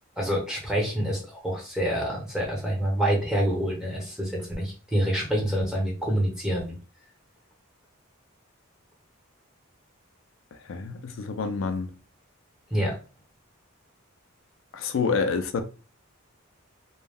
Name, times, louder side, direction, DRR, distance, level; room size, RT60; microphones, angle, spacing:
voice 1, 0.2-4.3 4.6-6.8 12.7-12.9, equal, 5° right, 0.9 m, -27 dB
voice 2, 10.7-11.9 14.7-15.6, left 5 dB, 65° left, 0.4 m, -27 dB
2.3 x 2.0 x 3.3 m
head